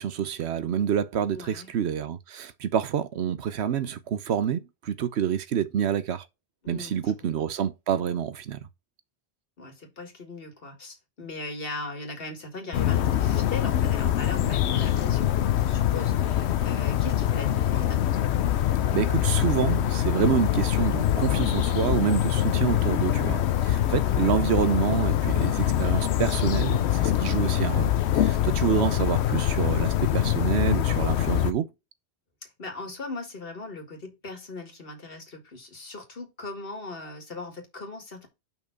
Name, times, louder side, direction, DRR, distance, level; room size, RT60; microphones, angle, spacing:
voice 1, 0.0-6.2 6.7-8.6 18.9-31.7, right 8 dB, 85° right, 1.0 m, -27 dB
voice 2, 1.3-1.7 6.6-7.0 7.4-7.5 9.6-18.3 24.0-24.3 32.6-38.3, left 2 dB, 60° left, 2.1 m, -39 dB
sound 1, 12.7-31.5, left 11 dB, 85° left, 0.9 m, -24 dB
5.6 x 4.6 x 5.8 m
omnidirectional pair, 1.1 m